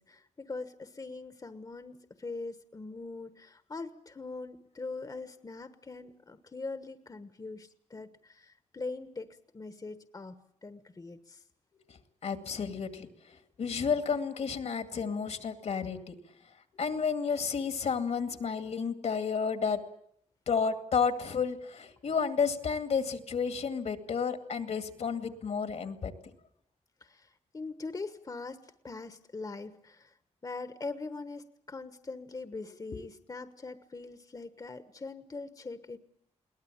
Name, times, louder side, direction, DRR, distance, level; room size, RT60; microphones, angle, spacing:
voice 1, 0.0-9.3 9.5-11.4 27.0-30.1 30.4-36.0, left 3 dB, 30° left, 10 dB, 1.2 m, -42 dB
voice 2, 12.2-16.1 16.7-19.8 20.5-26.1, left 6 dB, 70° left, 8 dB, 2.3 m, -31 dB
22.0 x 18.5 x 8.8 m, 0.73 s
cardioid pair, 90°, 12 cm